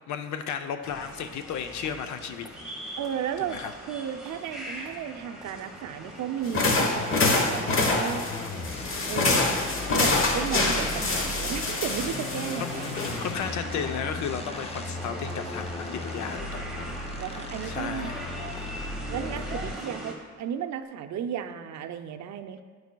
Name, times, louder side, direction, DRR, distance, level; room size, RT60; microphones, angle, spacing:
voice 1, 0.1-2.5 3.4-3.7 10.6-11.0 12.6-16.8 17.6-18.3, left 7 dB, 70° left, 8 dB, 0.6 m, -34 dB
sound 1, 0.8-20.1, right 1 dB, ahead, 1.6 m, -40 dB
voice 2, 3.0-8.3 9.1-9.6 9.9-13.0 17.2-18.1 19.1-22.6, right 9 dB, 65° right, 8 dB, 0.5 m, -34 dB
sound 2, 6.5-13.5, left 3 dB, 45° left, 1.0 m, -26 dB
sound 3, 7.0-19.9, left 3 dB, 20° left, 0.5 m, -37 dB
11.5 x 4.7 x 2.2 m, 1.5 s
cardioid pair, 90°, 30 cm